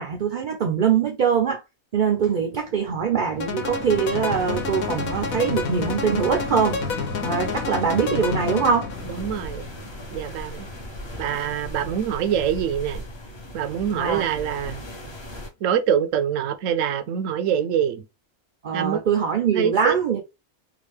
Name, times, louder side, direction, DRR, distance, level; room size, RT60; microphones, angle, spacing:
voice 1, 0.0-1.6 1.9-6.8 7.2-8.9 13.9-14.3 18.6-20.2, right 6 dB, 55° right, 0.5 m, -23 dB
sound 1, 2.2-13.5 14.1-14.2, left 3 dB, 65° left, 1.2 m, -36 dB
sound 2, 3.4-9.0, left 4 dB, 85° left, 1.2 m, -30 dB
sound 3, 8.9-15.5, equal, 30° left, 0.5 m, -38 dB
voice 2, 9.1-9.7 10.1-10.7 11.2-13.0 13.5-14.8 15.6-18.0 18.7-19.0 19.5-20.0, right 9 dB, 70° right, 0.9 m, -25 dB
3.9 x 2.4 x 3.1 m
omnidirectional pair, 1.4 m